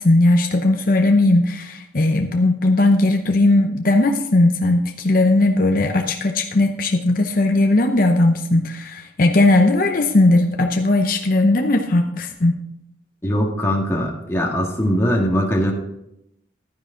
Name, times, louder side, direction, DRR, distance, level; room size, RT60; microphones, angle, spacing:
voice 1, 0.0-12.6, left 2 dB, 50° left, 4 dB, 0.8 m, -17 dB
voice 2, 13.2-15.7, equal, 15° left, -1 dB, 1.7 m, -21 dB
11.5 x 9.7 x 3.8 m, 0.81 s
head